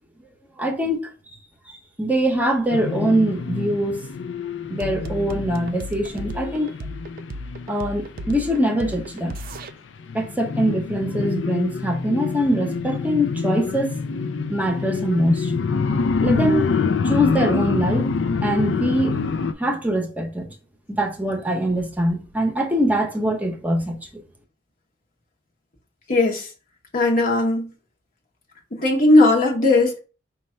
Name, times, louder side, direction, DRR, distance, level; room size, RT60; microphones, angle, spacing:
voice 1, 0.6-1.0 2.0-4.1 4.7-6.7 7.7-9.3 10.1-13.9 14.5-15.5 16.2-16.7 17.0-18.1 18.4-19.2 19.6-20.5 21.0-24.2, equal, 10° right, 0.8 m, -23 dB
sound 1, 2.7-9.7 10.0-19.5, left 4 dB, 85° left, 0.4 m, -26 dB
sound 2, 4.8-9.7, equal, 55° right, 0.5 m, -34 dB
voice 2, 26.1-26.5 26.9-27.7 28.7-30.0, left 2 dB, 50° left, 0.9 m, -17 dB
5.2 x 2.3 x 4.3 m
head